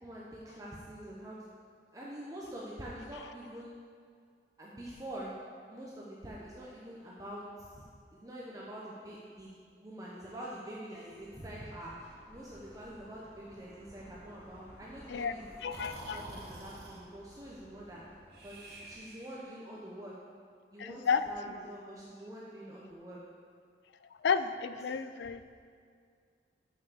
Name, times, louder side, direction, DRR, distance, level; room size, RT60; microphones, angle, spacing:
voice 1, 0.0-1.6 1.9-3.7 4.6-5.3 5.7-7.9 8.1-15.5 16.0-18.0 18.4-20.1 20.7-23.2, right 1 dB, 20° right, -6 dB, 0.9 m, -45 dB
sound 1, 11.1-19.0, equal, 10° left, 1.2 m, -57 dB
voice 2, 15.6-16.2 20.8-21.6 24.2-25.4, left 6 dB, 80° left, 11 dB, 0.4 m, -32 dB
Breathing, 15.7-17.0 18.3-19.6, right 2 dB, 60° right, 1.7 m, -48 dB
6.9 x 6.2 x 6.8 m, 2.1 s
head